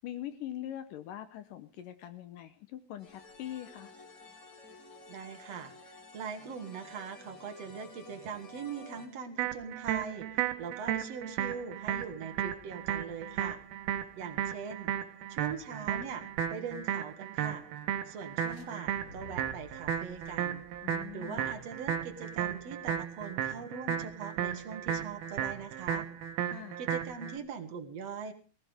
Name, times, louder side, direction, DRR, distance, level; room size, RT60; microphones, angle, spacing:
voice 1, 0.0-3.9 20.8-21.5 26.4-26.8, left 12 dB, 75° left, 11 dB, 2.1 m, -43 dB
sound 1, 3.0-9.1, left 3 dB, 35° left, 4.3 m, -52 dB
voice 2, 5.1-13.6 14.2-14.9 15.3-17.6 18.1-20.7 21.1-26.1 26.8-28.3, right 6 dB, 50° right, 6 dB, 2.1 m, -42 dB
sound 2, 9.4-27.4, right 9 dB, 70° right, 3.1 m, -34 dB
sound 3, 18.2-18.7 19.0-21.6, left 2 dB, 50° left, 3.7 m, -54 dB
19.0 x 16.0 x 3.5 m, 0.33 s
omnidirectional pair, 4.7 m